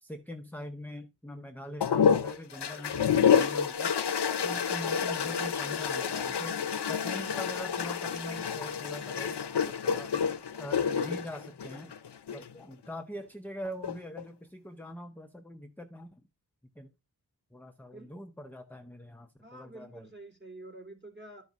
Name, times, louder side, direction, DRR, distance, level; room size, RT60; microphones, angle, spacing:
voice 1, 0.0-3.9 4.3-6.6 6.9-10.1 10.6-11.9 12.3-16.2 16.8-16.9 17.5-20.1, equal, 5° left, 0.7 m, -43 dB
sound 1, 1.8-12.5 13.7-14.2, left 7 dB, 85° left, 0.7 m, -28 dB
voice 2, 19.4-21.4, right 2 dB, 25° right, 3.2 m, -48 dB
12.0 x 5.1 x 3.6 m
wide cardioid pair, 55°, 39 cm